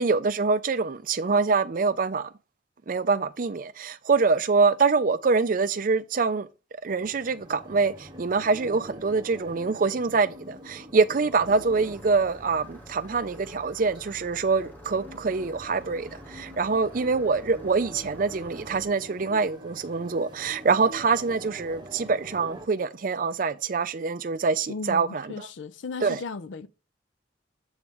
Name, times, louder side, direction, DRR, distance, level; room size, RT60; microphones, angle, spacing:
voice 1, 0.0-2.3 2.9-6.5 6.8-25.5 26.0-26.2, right 4 dB, 45° right, 0.5 m, -25 dB
sound 1, 6.9-22.7, equal, 25° right, 1.1 m, -45 dB
Engine starting, 11.3-18.9, equal, 10° left, 0.8 m, -49 dB
voice 2, 24.7-26.7, left 4 dB, 75° left, 0.5 m, -36 dB
7.9 x 3.2 x 5.3 m
head